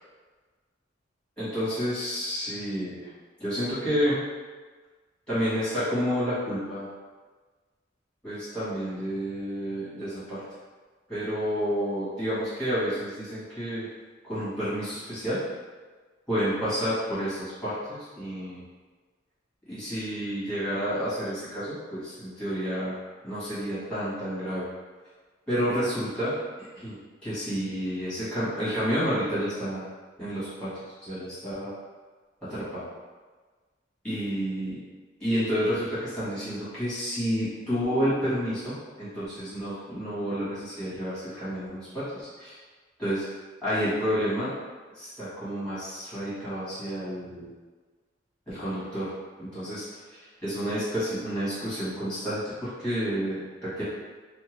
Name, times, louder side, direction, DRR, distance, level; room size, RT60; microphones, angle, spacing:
voice 1, 1.4-3.1 3.4-4.1 5.3-6.9 8.2-10.4 11.1-13.9 14.2-15.4 16.3-18.6 19.7-22.9 23.2-24.7 25.5-26.3 26.8-27.0 27.2-29.8 30.2-30.7 31.0-31.7 32.5-32.9 34.0-34.8 35.2-42.5 43.0-43.3 43.6-44.5 44.9-47.5 48.5-49.1 49.4-49.8 50.4-53.8, equal, 5° left, -13 dB, 1.5 m, -30 dB
2.8 x 2.2 x 3.1 m, 1.4 s
head